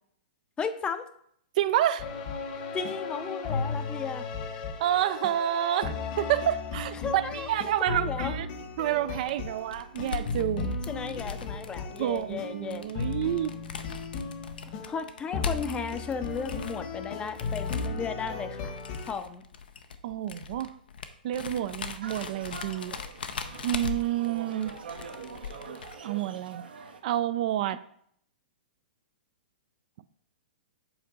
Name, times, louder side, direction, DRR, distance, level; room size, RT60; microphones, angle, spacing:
voice 1, 0.6-1.0 2.7-4.2 7.0-7.5 7.8-8.3 10.9-12.9 14.8-18.8 19.1-19.4, left 5 dB, 20° left, 0.6 m, -35 dB
voice 2, 1.6-2.1 4.8-8.5 8.8-10.8 12.0-13.5 20.0-20.7 21.2-23.0 23.6-24.7 26.0-26.6 27.0-27.8, right 12 dB, 55° right, 0.4 m, -29 dB
sound 1, 2.0-19.1, left 4 dB, 50° left, 1.3 m, -35 dB
sound 2, 9.1-26.0, left 6 dB, 75° left, 0.7 m, -40 dB
sound 3, 22.0-27.0, right 5 dB, 80° right, 1.1 m, -44 dB
7.9 x 4.4 x 3.9 m
hypercardioid pair, 120°, 5 cm